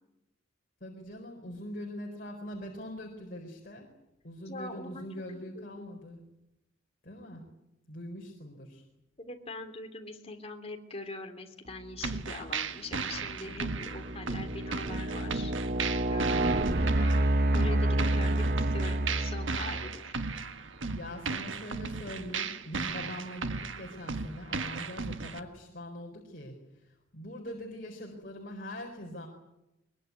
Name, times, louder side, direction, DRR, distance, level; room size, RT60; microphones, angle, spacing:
voice 1, 0.8-3.9 4.2-6.2 7.0-7.5 7.9-8.8 13.4-13.9 18.1-18.3 20.9-29.3, left 1 dB, 50° left, 1 dB, 4.4 m, -43 dB
voice 2, 4.5-5.0 5.5-5.9 9.2-15.5 16.1-16.4 16.7-17.1 17.5-18.4 18.7-20.2, left 2 dB, 30° left, 4 dB, 3.3 m, -43 dB
sound 1, 12.0-25.4, right 4 dB, 80° right, 1.4 m, -36 dB
sound 2, 12.3-12.5 13.1-20.0, right 1 dB, 50° right, 0.9 m, -29 dB
22.5 x 22.5 x 9.7 m, 0.92 s
head